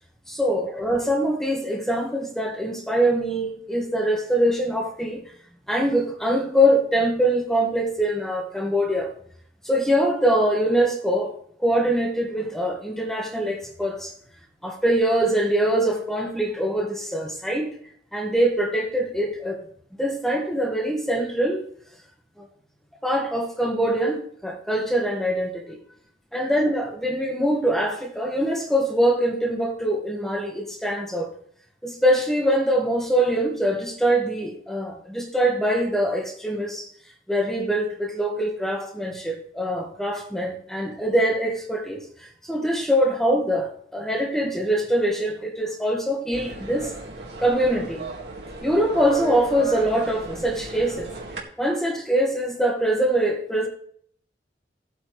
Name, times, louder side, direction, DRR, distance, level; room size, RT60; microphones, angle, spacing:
voice 1, 0.3-5.2 5.7-9.1 9.6-11.3 11.6-14.1 14.6-17.7 18.1-19.6 20.0-21.6 22.4-22.5 23.0-25.8 26.3-31.3 31.8-36.9 37.3-46.9 47.4-48.0 48.6-51.1 51.6-53.7, right 1 dB, ahead, 1 dB, 1.7 m, -23 dB
sound 1, 46.3-51.4, right 2 dB, 70° right, 2.0 m, -35 dB
17.0 x 8.4 x 3.3 m, 0.65 s
head